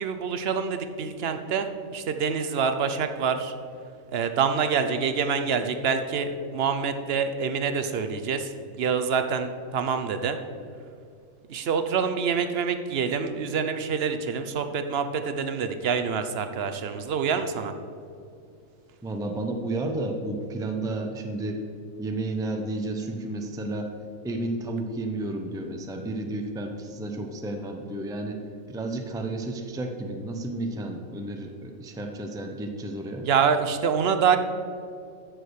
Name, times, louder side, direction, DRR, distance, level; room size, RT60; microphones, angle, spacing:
voice 1, 0.0-3.5 4.1-8.5 8.8-10.4 11.5-17.7 33.2-34.4, right 6 dB, 55° right, 8 dB, 0.9 m, -26 dB
voice 2, 19.0-21.6 22.0-23.9 24.2-28.4 28.7-33.3, right 2 dB, 5° right, 4 dB, 0.5 m, -32 dB
13.5 x 5.0 x 6.4 m, 2.4 s
omnidirectional pair, 1.5 m